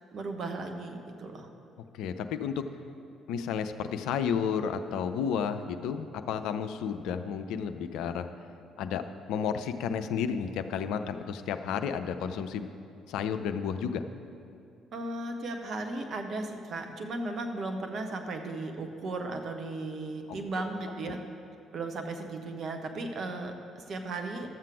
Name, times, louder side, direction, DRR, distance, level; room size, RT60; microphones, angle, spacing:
voice 1, 0.1-1.5 14.9-21.2 21.7-24.5, right 2 dB, 50° right, 5 dB, 1.1 m, -36 dB
voice 2, 1.9-2.6 3.3-8.3 8.8-9.0 9.3-12.7 13.1-14.0, left 7 dB, 65° left, 9 dB, 0.5 m, -32 dB
12.5 x 7.4 x 4.8 m, 2.5 s
figure-of-eight pair, 45°, 0 cm